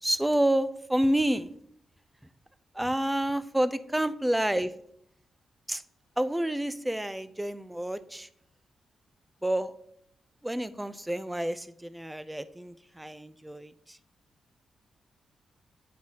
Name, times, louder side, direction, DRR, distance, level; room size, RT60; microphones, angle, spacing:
voice 1, 0.0-1.5 2.8-4.7 5.7-5.8 6.2-8.3 9.4-9.7 10.4-14.0, right 1 dB, 5° right, 13 dB, 0.4 m, -29 dB
9.1 x 4.6 x 2.8 m, 0.70 s
cardioid pair, 115°, 0 cm